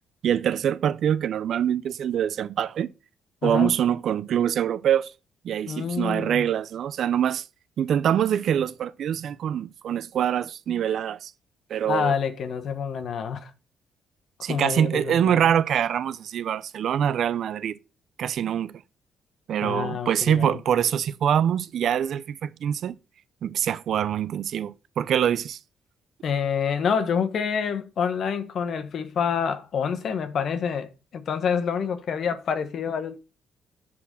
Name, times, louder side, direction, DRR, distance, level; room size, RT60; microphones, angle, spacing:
voice 1, 0.2-2.9 3.4-5.1 5.4-7.4 7.8-11.3 11.7-12.1 14.4-17.7 18.2-18.7 19.5-22.9 23.4-25.6, right 9 dB, 65° right, 0.5 m, -24 dB
voice 2, 5.7-6.5 11.9-13.5 14.4-15.5 19.6-20.6 26.2-33.2, left 6 dB, 60° left, 1.0 m, -27 dB
7.6 x 4.3 x 5.7 m
cardioid pair, 90°, 0 cm